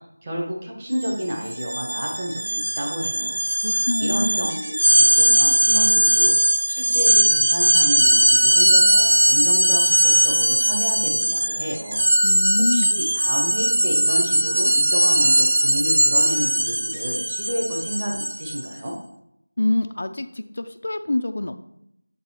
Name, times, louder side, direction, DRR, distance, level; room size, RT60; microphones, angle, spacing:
voice 1, 0.2-3.4 3.7-12.3 12.7-19.0, equal, 20° right, -3 dB, 1.3 m, -30 dB
sound 1, 0.9-1.1 1.4-18.7, right 1 dB, 60° right, 0.8 m, -19 dB
voice 2, 3.6-4.6 12.2-12.9 19.6-21.6, left 2 dB, 45° left, 7 dB, 0.4 m, -25 dB
7.7 x 4.0 x 4.4 m, 0.78 s
figure-of-eight pair, 175°, 0 cm